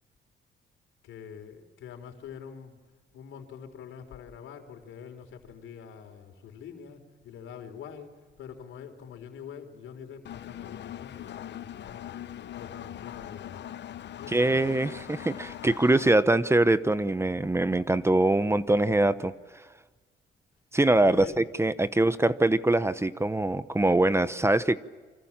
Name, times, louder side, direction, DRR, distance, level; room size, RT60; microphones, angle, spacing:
voice 1, 1.0-2.8 3.1-12.3 12.5-13.6 14.2-14.8 21.0-21.4, left 7 dB, 85° left, 6 dB, 4.0 m, -45 dB
Engine, 10.2-16.1, left 11 dB, 60° left, 1.0 m, -41 dB
voice 2, 14.3-14.9 15.2-19.6 20.7-24.8, right 2 dB, 15° right, 14 dB, 0.9 m, -23 dB
28.0 x 25.5 x 7.4 m, 1.4 s
cardioid pair, 90°, 20 cm